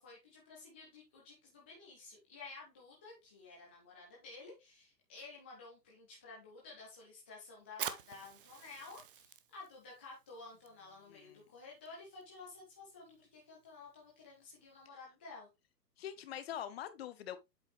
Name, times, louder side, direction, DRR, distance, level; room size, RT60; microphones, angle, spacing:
voice 1, 0.0-15.5, left 3 dB, 10° left, 0.4 m, -53 dB
Fire, 7.7-14.9, right 9 dB, 35° right, 0.6 m, -50 dB
voice 2, 11.1-11.4 16.0-17.4, left 10 dB, 40° left, 0.9 m, -44 dB
7.9 x 5.1 x 3.1 m
figure-of-eight pair, 120°, 49 cm